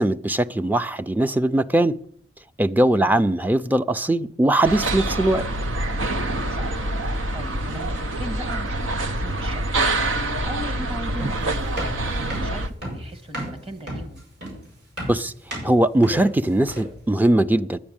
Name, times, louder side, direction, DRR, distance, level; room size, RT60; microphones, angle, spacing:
voice 1, 0.0-1.9 2.6-5.4 15.1-15.3 15.6-17.8, right 1 dB, 10° right, 0.4 m, -20 dB
sound 1, 4.6-12.7, right 2 dB, 90° right, 0.9 m, -26 dB
voice 2, 6.5-6.9 7.3-11.6 12.0-14.2, equal, 30° right, 1.5 m, -38 dB
sound 2, 11.2-17.0, right 1 dB, 60° right, 7.4 m, -33 dB
10.0 x 9.8 x 8.7 m
head